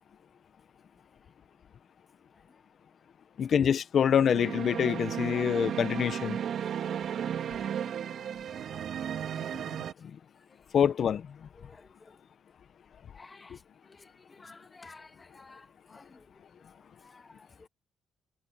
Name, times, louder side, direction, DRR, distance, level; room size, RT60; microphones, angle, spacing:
voice 1, 3.4-6.4 10.7-11.3, left 8 dB, 55° left, 1.2 m, -25 dB
sound 1, 4.1-9.9, right 9 dB, 65° right, 2.1 m, -34 dB
voice 2, 6.8-7.2 7.6-7.7 8.0-9.6 11.6-12.2 13.1-16.3 16.8-17.7, left 3 dB, 25° left, 2.2 m, -55 dB
cardioid pair, 90°, 0 cm